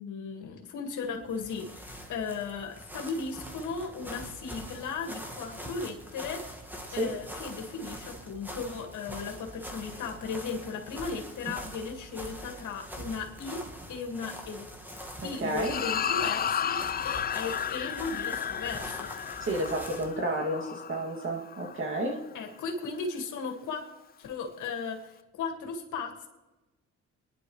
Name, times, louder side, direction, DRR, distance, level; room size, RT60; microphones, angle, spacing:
voice 1, 0.0-6.5 6.9-14.7 15.2-19.1 22.3-23.9 24.2-26.3, left 5 dB, 75° left, 2.0 m, -36 dB
sound 1, 1.1-20.2, equal, 5° right, 1.8 m, -44 dB
voice 2, 15.4-15.8 19.4-22.2, right 1 dB, 40° right, 2.5 m, -31 dB
sound 2, 15.6-22.2, left 8 dB, 30° left, 0.4 m, -33 dB
23.0 x 10.5 x 3.2 m
cardioid pair, 90°, 30 cm